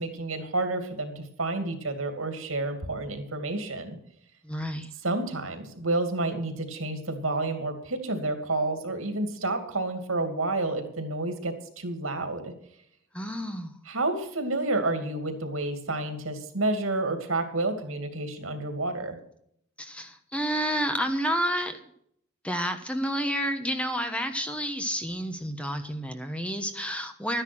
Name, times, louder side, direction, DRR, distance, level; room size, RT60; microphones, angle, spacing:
voice 1, 0.0-4.0 5.0-12.5 13.9-19.2, right 2 dB, 75° right, 7 dB, 2.6 m, -30 dB
voice 2, 4.4-4.9 13.1-13.7 19.8-21.8 22.4-27.4, equal, 5° left, 7 dB, 1.1 m, -30 dB
13.0 x 10.0 x 6.2 m, 0.69 s
head